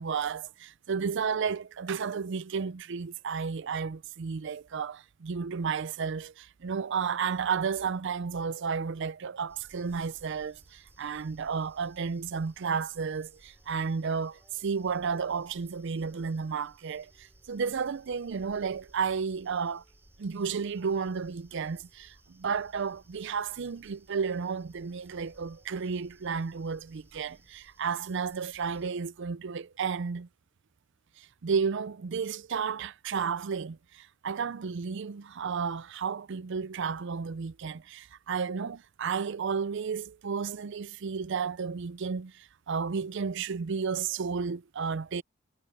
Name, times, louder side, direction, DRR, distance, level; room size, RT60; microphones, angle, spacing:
voice 1, 0.0-19.8 20.2-30.3 31.2-45.2, right 6 dB, 60° right, 0.5 m, -32 dB
sound 1, 9.5-28.9, right 1 dB, 10° right, 3.1 m, -61 dB
head